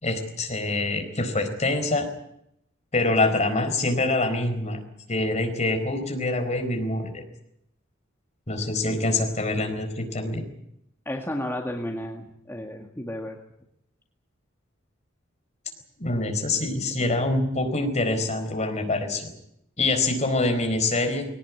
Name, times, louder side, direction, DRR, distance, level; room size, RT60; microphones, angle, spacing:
voice 1, 0.0-2.1 2.9-4.8 5.1-7.2 8.5-10.5 16.0-19.3 19.8-21.2, left 2 dB, 35° left, 5 dB, 4.4 m, -25 dB
voice 2, 11.1-13.4, left 1 dB, 10° left, 1 dB, 1.9 m, -32 dB
20.5 x 18.5 x 9.5 m, 0.78 s
head